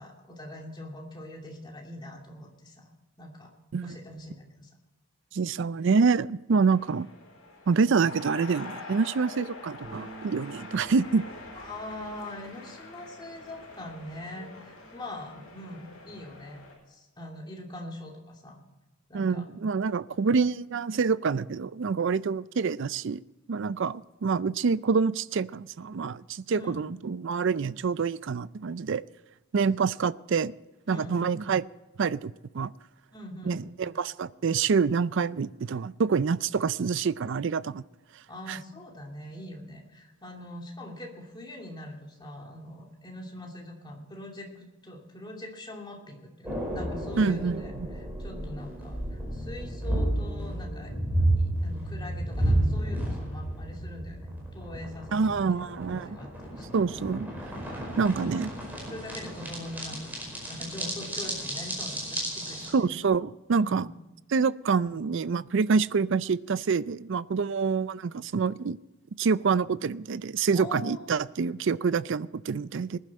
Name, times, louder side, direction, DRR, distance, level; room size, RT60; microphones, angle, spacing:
voice 1, 0.0-2.9 3.2-3.5 3.8-4.7 11.5-16.6 16.9-18.6 19.1-19.4 26.5-26.8 30.9-31.3 33.1-33.6 38.3-50.9 51.4-56.7 58.9-62.9 63.6-63.9 70.5-71.0, left 1 dB, 20° left, 2.6 m, -42 dB
voice 2, 5.3-7.1 7.7-11.2 19.1-23.2 23.5-29.0 29.5-30.5 30.9-31.7 32.0-32.7 33.5-37.8 38.5-38.6 47.2-47.9 55.1-56.2 56.7-57.3 58.0-58.5 62.7-63.9 64.3-68.8 69.2-73.0, right 5 dB, 55° right, 0.4 m, -26 dB
sound 1, 6.7-16.7, left 3 dB, 70° left, 5.0 m, -45 dB
sound 2, 9.8-16.1, right 4 dB, 35° right, 2.1 m, -51 dB
sound 3, 46.4-62.7, right 1 dB, 10° right, 4.9 m, -32 dB
20.0 x 11.0 x 4.3 m
head